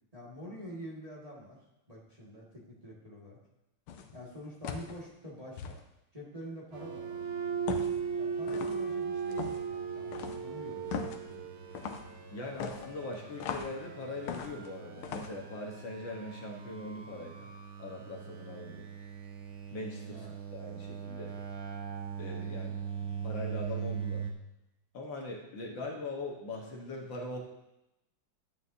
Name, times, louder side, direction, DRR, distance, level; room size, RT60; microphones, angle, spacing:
voice 1, 0.1-1.6 1.9-3.4 4.1-5.8 6.1-7.2 8.2-10.9 11.3-11.5 20.1-20.4, equal, 20° right, -6 dB, 1.7 m, -46 dB
sound 1, 3.9-4.2 4.6-5.0 5.6-5.8 7.7-8.0 8.5-8.8 9.3-9.6 10.1-10.4 10.9-11.2 11.7-12.1 12.6-13.8 14.3-14.7 15.0-15.3, left 7 dB, 85° left, 1.6 m, -38 dB
sound 2, 6.7-24.3, right 7 dB, 80° right, 1.7 m, -39 dB
voice 2, 12.3-17.5 17.8-18.9 19.7-21.4 22.2-22.8 23.2-24.3 24.9-27.4, left 2 dB, 65° left, -1 dB, 1.9 m, -41 dB
12.5 x 9.0 x 2.7 m, 0.92 s
omnidirectional pair, 2.4 m